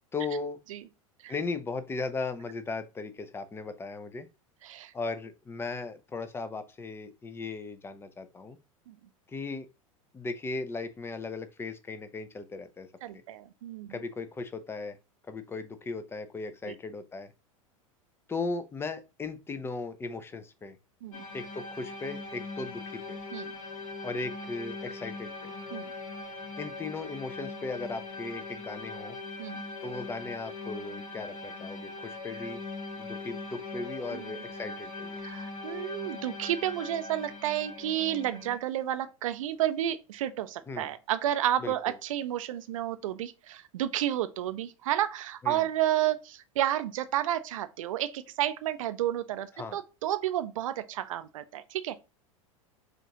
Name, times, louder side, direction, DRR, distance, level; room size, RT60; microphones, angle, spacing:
voice 1, 0.1-0.6 1.3-4.3 4.9-8.6 9.3-9.7 10.1-12.9 13.9-15.0 15.3-17.3 18.3-20.8 21.3-23.2 24.0-25.5 26.6-29.2 29.8-32.6 33.0-35.2 40.7-40.9 41.6-41.9 45.4-45.7 49.5-49.8, left 3 dB, 15° left, 0.5 m, -37 dB
voice 2, 4.6-4.9 8.9-9.0 13.0-13.9 16.6-16.7 21.0-21.2 23.3-23.5 25.7-25.9 29.4-29.6 34.1-34.3 35.2-51.9, right 12 dB, 70° right, 0.5 m, -31 dB
sound 1, 21.1-38.6, left 3 dB, 70° left, 1.5 m, -41 dB
5.0 x 2.5 x 2.8 m
hypercardioid pair, 90°, 18 cm